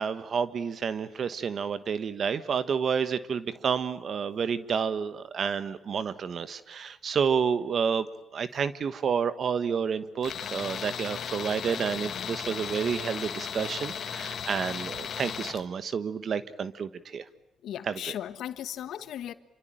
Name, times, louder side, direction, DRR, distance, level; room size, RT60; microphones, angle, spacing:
voice 1, 0.0-8.1 8.3-17.2 17.9-18.0, right 6 dB, 55° right, 1.2 m, -30 dB
Tools, 10.2-15.6, left 7 dB, 60° left, 1.6 m, -36 dB
voice 2, 17.6-19.3, left 11 dB, 75° left, 1.4 m, -36 dB
26.5 x 24.5 x 8.9 m
cardioid pair, 90°, 0 cm